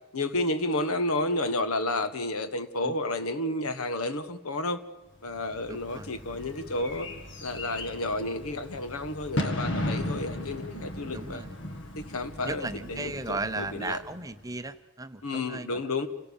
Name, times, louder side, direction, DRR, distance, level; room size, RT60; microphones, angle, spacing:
voice 1, 0.1-4.8 5.2-7.1 7.4-11.4 12.0-14.0 15.2-16.1, left 2 dB, 85° left, 11 dB, 1.3 m, -31 dB
Bird / Fireworks, 5.3-14.5, left 1 dB, 55° left, 1.7 m, -36 dB
voice 2, 5.7-6.1 11.1-11.6 12.4-15.8, right 2 dB, 15° right, 11 dB, 0.7 m, -36 dB
28.5 x 17.0 x 7.0 m, 1.1 s
head